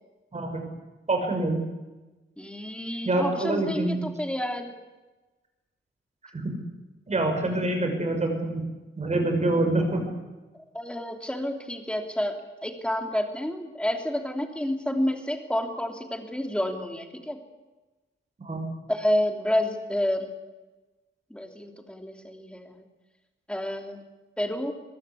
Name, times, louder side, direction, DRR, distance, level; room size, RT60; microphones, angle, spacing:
voice 1, 0.3-0.6 1.1-1.6 3.0-4.0 6.3-6.6 7.1-8.6 9.0-10.1 18.4-18.6, right 2 dB, 30° right, 4 dB, 6.2 m, -26 dB
voice 2, 2.4-4.7 10.7-17.4 18.9-20.3 21.3-22.8 23.5-24.0 24.4-24.7, left 1 dB, 5° left, 4 dB, 3.0 m, -29 dB
23.0 x 22.0 x 8.4 m, 1.2 s
wide cardioid pair, 165°, 21 cm